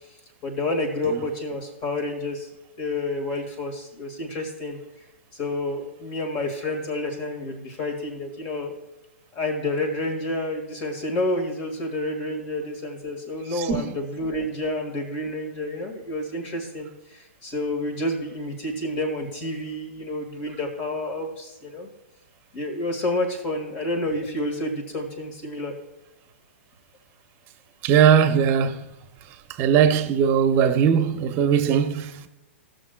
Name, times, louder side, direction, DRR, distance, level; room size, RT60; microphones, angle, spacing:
voice 1, 0.4-2.5 2.8-4.8 5.3-8.8 9.3-21.9 22.5-25.8, left 1 dB, 40° left, 1.9 m, -29 dB
voice 2, 27.8-28.8 29.6-32.3, right 8 dB, 35° right, 0.9 m, -19 dB
16.0 x 6.5 x 2.3 m
hypercardioid pair, 120°, 7 cm